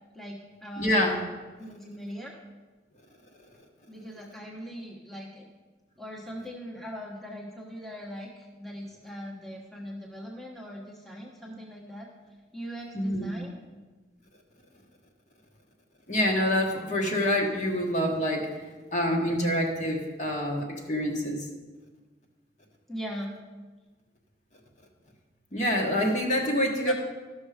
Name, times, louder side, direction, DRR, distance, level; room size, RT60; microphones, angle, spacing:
voice 1, 0.1-0.9 1.6-2.3 3.9-5.5 6.0-12.1 12.5-13.6 22.9-23.3 26.8-26.9, equal, ahead, -2 dB, 1.1 m, -40 dB
voice 2, 0.8-1.2 12.9-13.3 16.1-18.6 18.9-21.5 25.5-26.9, equal, 40° left, 0 dB, 1.3 m, -26 dB
13.0 x 6.3 x 5.0 m, 1.3 s
head